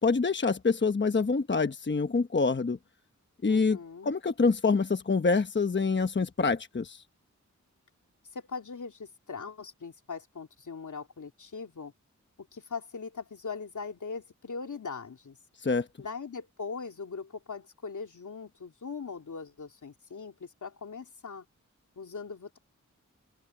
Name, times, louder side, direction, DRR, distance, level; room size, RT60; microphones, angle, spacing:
voice 1, 0.0-2.8 3.4-3.8 4.0-7.0 15.6-15.9, left 4 dB, 40° left, 1.0 m, -26 dB
voice 2, 3.5-4.1 8.3-11.9 12.4-15.4 16.0-21.4 22.0-22.6, left 5 dB, 75° left, 3.0 m, -40 dB
open air
wide cardioid pair, 70°, 30 cm